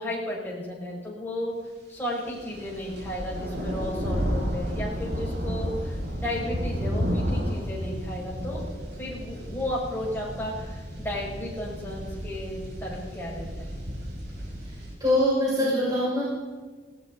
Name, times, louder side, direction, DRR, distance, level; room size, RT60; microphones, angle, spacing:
voice 1, 0.0-1.6 1.9-8.6 9.0-13.7, left 1 dB, 10° left, -5 dB, 6.1 m, -34 dB
sound 1, 2.2-14.9, equal, 70° right, 5.7 m, -32 dB
voice 2, 15.0-16.2, left 1 dB, 25° right, -7 dB, 5.8 m, -23 dB
19.5 x 17.5 x 4.0 m, 1.4 s
head